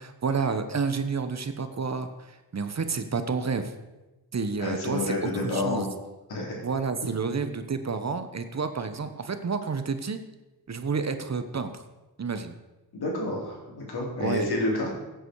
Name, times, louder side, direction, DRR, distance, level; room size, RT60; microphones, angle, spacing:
voice 1, 0.0-3.7 4.3-5.9 6.6-10.2 10.7-11.8 12.2-12.5 14.2-14.5, right 5 dB, 40° right, 9 dB, 1.1 m, -30 dB
voice 2, 4.6-5.9 6.3-6.6 12.9-14.9, left 2 dB, 70° left, -2 dB, 4.3 m, -29 dB
16.0 x 8.2 x 4.8 m, 1.1 s
cardioid pair, 80°, 39 cm